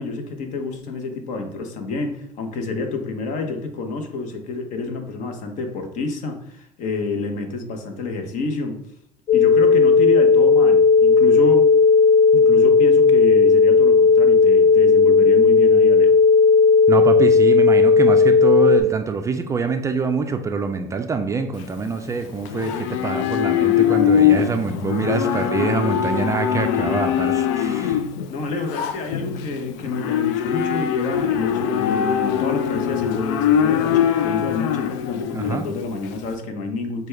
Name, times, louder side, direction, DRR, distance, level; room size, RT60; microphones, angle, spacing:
voice 1, 0.0-8.8 9.3-11.7 12.3-16.2 28.3-37.1, left 3 dB, 55° left, 5 dB, 0.8 m, -29 dB
sound 1, 9.3-18.8, left 4 dB, 30° left, 0.6 m, -14 dB
voice 2, 16.9-28.0 35.3-35.7, right 4 dB, 20° right, 6 dB, 0.3 m, -25 dB
Livestock farm animals working animals, 21.6-36.3, left 9 dB, 90° left, 0.4 m, -22 dB
6.1 x 2.2 x 3.3 m, 0.70 s
supercardioid pair, 115°, 15 cm